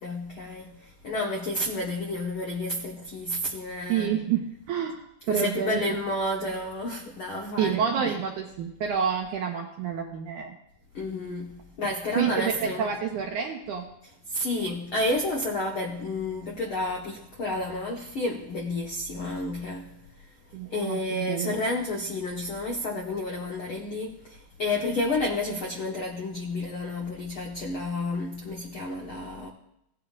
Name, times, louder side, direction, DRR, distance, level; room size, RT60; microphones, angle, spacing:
voice 1, 0.0-4.2 5.3-8.1 10.9-12.9 14.3-20.0 20.7-29.5, left 2 dB, 90° left, 1.1 m, -31 dB
voice 2, 3.9-4.4 4.7-6.0 7.6-10.6 12.2-13.9 20.5-21.5, right 8 dB, 75° right, 1.9 m, -28 dB
17.5 x 10.5 x 2.5 m
omnidirectional pair, 4.5 m